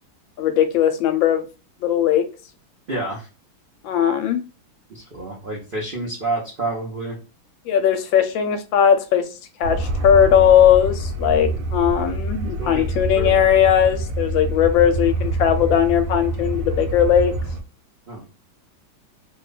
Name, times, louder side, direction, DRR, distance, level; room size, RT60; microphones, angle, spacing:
voice 1, 0.4-1.4 1.8-2.3 3.8-4.4 7.7-9.3 9.6-17.3, left 9 dB, 80° left, 8 dB, 1.3 m, -18 dB
voice 2, 2.9-3.3 4.9-7.2 11.5-11.6 12.6-13.4 18.1-18.3, right 2 dB, 55° right, -4 dB, 0.6 m, -29 dB
sound 1, 9.6-17.6, right 1 dB, 80° right, 1.4 m, -26 dB
3.2 x 2.2 x 3.8 m, 0.32 s
omnidirectional pair, 2.2 m